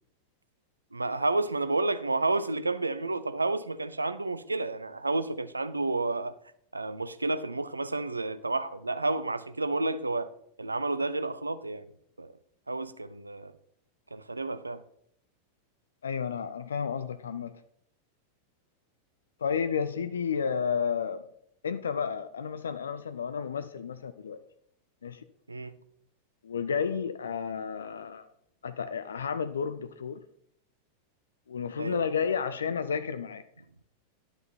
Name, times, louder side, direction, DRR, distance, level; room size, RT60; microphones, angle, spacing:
voice 1, 0.9-6.3 6.7-10.3 10.6-11.9 12.2-12.3 12.7-13.5 14.1-14.8 25.5-25.7 31.8-32.1, right 2 dB, 80° right, 13 dB, 0.5 m, -30 dB
voice 2, 16.0-17.6 19.4-21.2 21.6-24.4 25.0-25.2 26.4-28.3 28.6-30.2 31.5-33.4, left 6 dB, 70° left, 12 dB, 0.5 m, -31 dB
10.5 x 6.9 x 4.3 m, 0.69 s
figure-of-eight pair, 90°, 0 cm